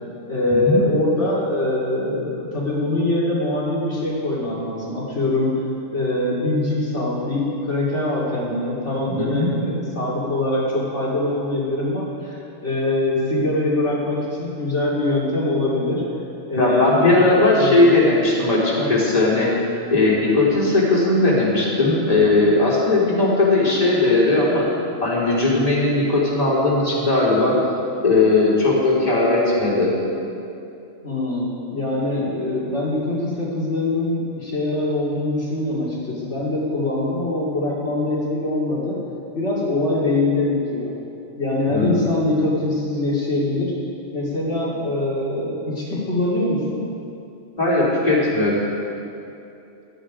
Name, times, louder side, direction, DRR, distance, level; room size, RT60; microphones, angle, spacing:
voice 1, 0.3-5.5 5.9-16.0 16.5-17.9 18.8-18.9 31.0-39.0 39.3-40.9 41.4-43.7 44.1-46.9, left 2 dB, 65° left, -7 dB, 2.9 m, -23 dB
voice 2, 9.1-9.5 16.6-19.5 19.9-24.7 25.0-27.6 28.0-29.9 41.7-42.0 47.6-48.6, left 2 dB, 30° left, -6 dB, 3.5 m, -18 dB
17.5 x 12.0 x 5.0 m, 2.7 s
omnidirectional pair, 1.3 m